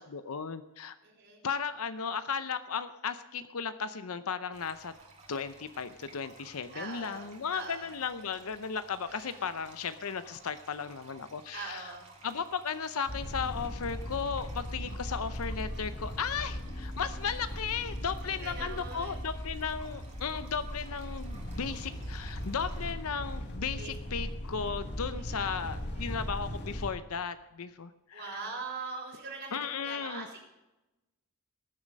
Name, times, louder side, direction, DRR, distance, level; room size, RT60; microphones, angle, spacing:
voice 1, 0.0-1.0 1.4-4.9 5.3-11.8 12.2-28.4 29.5-30.3, left 6 dB, 90° left, 11 dB, 0.7 m, -35 dB
voice 2, 1.0-1.4 6.7-7.9 9.0-9.5 11.5-12.0 18.2-19.2 23.8-23.9 25.3-26.2 28.1-30.4, right 4 dB, 50° right, 0 dB, 4.2 m, -43 dB
sound 1, 4.5-22.9, right 3 dB, 30° right, 2.6 m, -56 dB
sound 2, 13.1-26.9, equal, 55° left, 1.6 m, -38 dB
19.5 x 7.4 x 5.4 m, 0.98 s
head